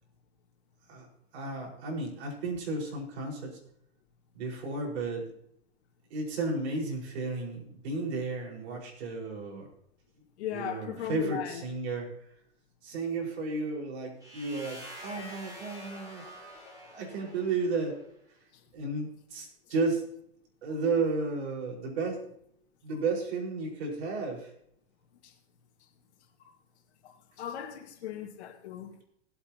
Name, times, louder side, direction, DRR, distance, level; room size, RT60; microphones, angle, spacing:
voice 1, 1.3-3.6 4.3-5.3 6.1-9.7 10.5-12.1 12.8-16.2 16.9-18.0 18.7-20.0 20.6-22.2 22.8-24.5, right 3 dB, 75° right, 5.1 m, -33 dB
voice 2, 10.4-11.6 18.5-18.6 25.2-25.3 26.4-26.5 27.0-29.0, left 10 dB, 80° left, 2.4 m, -38 dB
sound 1, 14.2-18.0, equal, 10° right, 4.5 m, -47 dB
19.5 x 8.3 x 2.9 m
supercardioid pair, 135°, 33 cm